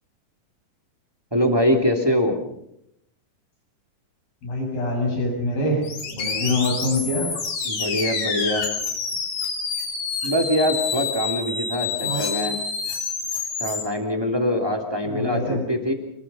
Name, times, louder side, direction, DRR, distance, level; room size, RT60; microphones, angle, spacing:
voice 1, 1.3-2.4 7.6-8.6 10.2-12.6 13.6-15.9, equal, 10° right, 3 dB, 2.5 m, -23 dB
voice 2, 4.4-7.4 12.0-12.3 15.0-15.6, left 1 dB, 85° left, 1 dB, 8.8 m, -25 dB
sound 1, 5.8-13.8, left 5 dB, 70° left, 5.0 m, -28 dB
25.5 x 23.5 x 5.7 m, 0.77 s
omnidirectional pair, 4.0 m